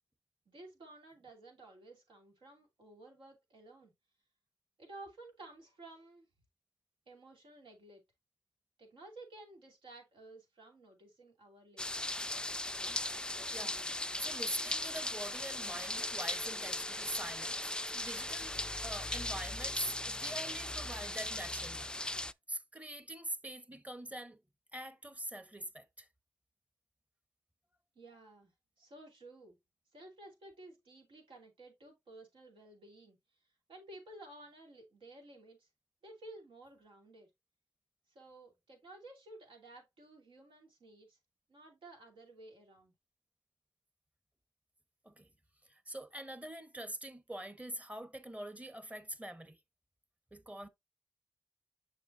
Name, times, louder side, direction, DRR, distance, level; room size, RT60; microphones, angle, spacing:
voice 1, 0.5-3.9 4.8-6.3 7.1-8.0 8.8-12.1 27.9-29.6 29.9-33.2 33.7-35.7 36.0-37.3 38.1-41.2 41.5-42.9, right 2 dB, 80° right, 2.7 m, -54 dB
sound 1, 11.8-22.3, left 1 dB, 10° left, 0.3 m, -38 dB
voice 2, 14.2-21.9 22.5-24.4 24.7-26.1 45.0-45.3 45.6-49.6 50.3-50.7, right 1 dB, 15° right, 1.1 m, -44 dB
sound 2, 15.9-21.7, left 1 dB, 45° right, 1.5 m, -60 dB
7.0 x 5.4 x 2.6 m
cardioid pair, 50°, 8 cm